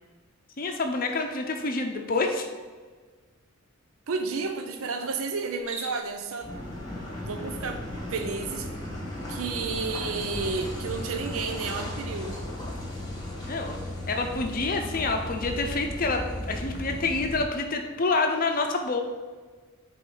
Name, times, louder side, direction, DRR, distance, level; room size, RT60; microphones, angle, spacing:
voice 1, 0.6-2.5 13.5-13.8 14.1-19.0, left 3 dB, 40° left, 4 dB, 0.6 m, -27 dB
voice 2, 4.1-6.5 7.2-7.8 8.1-8.7 9.3-12.4, right 4 dB, 75° right, 6 dB, 0.5 m, -31 dB
Cricket, 5.5-6.3, right 2 dB, 30° right, 0.7 m, -40 dB
Car passing by / Idling / Accelerating revving vroom, 6.4-17.4, left 1 dB, 20° left, 1.1 m, -35 dB
4.9 x 3.9 x 5.4 m, 1.4 s
head